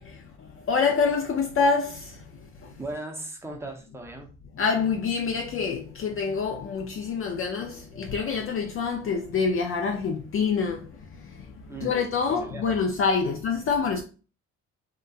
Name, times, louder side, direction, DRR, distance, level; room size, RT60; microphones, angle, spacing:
voice 1, 0.0-2.7 4.6-14.0, left 5 dB, 45° left, 0.4 m, -27 dB
voice 2, 2.8-4.3 11.7-12.0 12.3-12.6 13.2-13.3, right 2 dB, 10° right, 0.6 m, -37 dB
2.8 x 2.2 x 2.3 m
cardioid pair, 90°, 30 cm